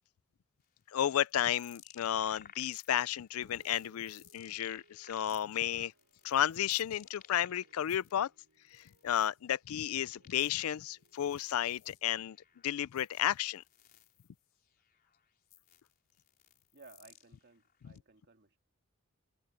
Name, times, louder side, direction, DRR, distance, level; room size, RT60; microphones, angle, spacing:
sound 1, 0.6-8.2 8.5-18.0, left 9 dB, 45° left, 3.9 m, -59 dB
voice 1, 0.9-5.9 6.2-8.3 8.7-12.4 12.6-13.6, left 10 dB, 90° left, 0.4 m, -32 dB
sound 2, 3.4-13.1, right 2 dB, 80° right, 6.6 m, -70 dB
voice 2, 16.7-18.6, right 3 dB, 55° right, 2.2 m, -58 dB
head